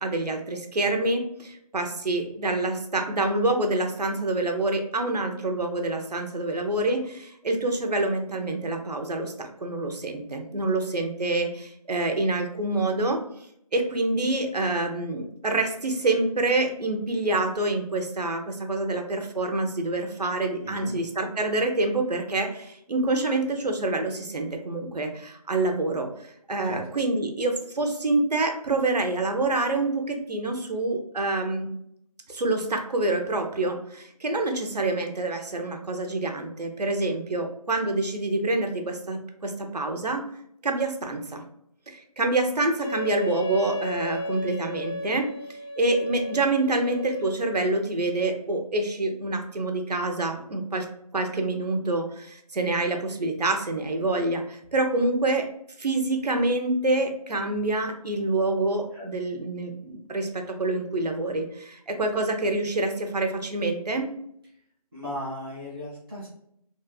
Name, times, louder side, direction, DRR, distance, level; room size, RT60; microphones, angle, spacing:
voice 1, 0.0-13.2 13.7-26.1 26.5-31.7 32.3-40.2 40.6-41.4 41.9-45.3 45.8-50.9 51.1-55.5 55.8-64.1, right 2 dB, 85° right, 4 dB, 0.7 m, -27 dB
voice 2, 20.6-21.0 26.6-26.9 58.9-59.1 64.5-64.6 64.9-66.3, left 1 dB, ahead, -19 dB, 0.8 m, -36 dB
Wind instrument woodwind instrument, 42.8-47.9, left 1 dB, 70° left, 0.9 m, -34 dB
3.0 x 2.7 x 2.3 m, 0.72 s
figure-of-eight pair, 175°, 20 cm